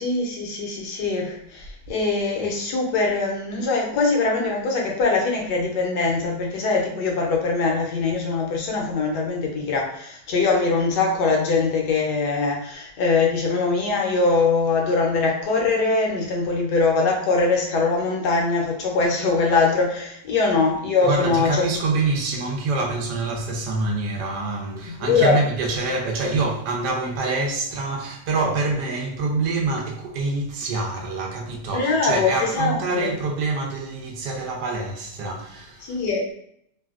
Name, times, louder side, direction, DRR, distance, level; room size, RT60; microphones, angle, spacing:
voice 1, 0.0-21.6 24.9-25.4 31.7-33.1 35.8-36.3, left 4 dB, 75° left, 1.2 m, -22 dB
voice 2, 21.0-36.0, right 3 dB, 80° right, 1.2 m, -26 dB
3.3 x 2.2 x 2.4 m
omnidirectional pair, 1.8 m